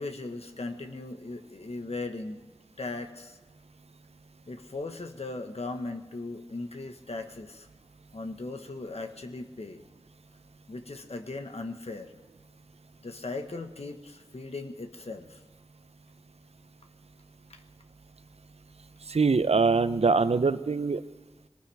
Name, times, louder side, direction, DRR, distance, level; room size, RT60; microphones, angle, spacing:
voice 1, 0.0-2.4 2.8-3.4 4.5-7.7 8.1-9.8 10.7-12.1 13.0-15.4 17.5-17.6, left 3 dB, 75° left, 5 dB, 1.3 m, -38 dB
voice 2, 19.0-21.0, right 4 dB, 75° right, 13 dB, 0.6 m, -23 dB
22.5 x 18.5 x 3.5 m, 1.2 s
wide cardioid pair, 60°, 11 cm